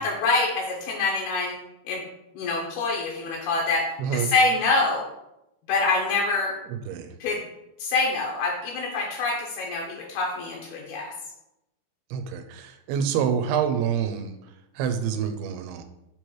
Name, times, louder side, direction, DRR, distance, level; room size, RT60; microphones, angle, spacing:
voice 1, 0.0-1.6 1.8-2.0 2.4-5.1 5.7-6.5 7.2-7.4 7.8-11.1, left 3 dB, 80° left, -2 dB, 2.7 m, -25 dB
voice 2, 4.0-4.3 6.9-7.1 12.1-14.3 14.8-15.8, right 8 dB, 85° right, 8 dB, 2.5 m, -27 dB
6.8 x 3.1 x 4.6 m, 0.88 s
omnidirectional pair, 4.5 m